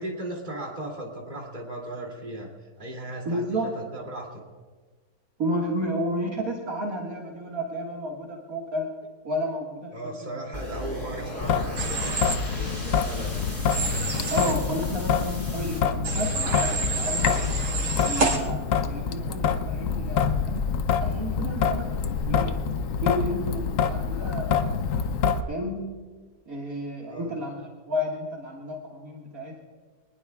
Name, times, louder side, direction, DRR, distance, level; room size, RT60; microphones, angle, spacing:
voice 1, 0.0-4.4 9.9-13.6 27.0-27.3, right 1 dB, 25° right, -1 dB, 2.8 m, -37 dB
voice 2, 3.3-3.7 5.4-8.9 9.2-10.1 14.3-17.4 18.0-20.7 21.0-22.0 22.3-22.6 23.0-24.5 25.5-25.9 26.5-29.6, equal, 55° right, -2 dB, 2.3 m, -31 dB
sound 1, 10.5-15.8, left 1 dB, 30° left, 5.2 m, -38 dB
Traffic noise roadway noise / Drip / Trickle dribble, 11.4-25.4, left 6 dB, 60° left, 0.9 m, -26 dB
Human voice / Train, 11.8-12.4 13.7-14.5 16.0-18.4, right 4 dB, 85° right, 2.6 m, -28 dB
23.5 x 20.0 x 2.4 m, 1.4 s
omnidirectional pair, 1.8 m